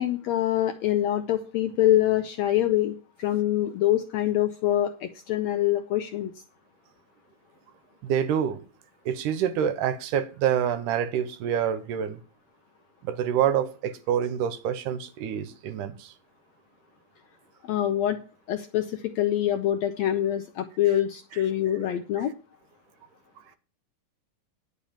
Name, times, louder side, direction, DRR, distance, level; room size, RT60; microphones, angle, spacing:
voice 1, 0.0-6.3 17.6-18.2 18.5-22.3, left 12 dB, 80° left, 1.6 m, -25 dB
voice 2, 8.0-8.6 9.1-12.2 13.0-16.1, right 9 dB, 80° right, 2.2 m, -27 dB
10.0 x 5.7 x 7.2 m
omnidirectional pair, 3.8 m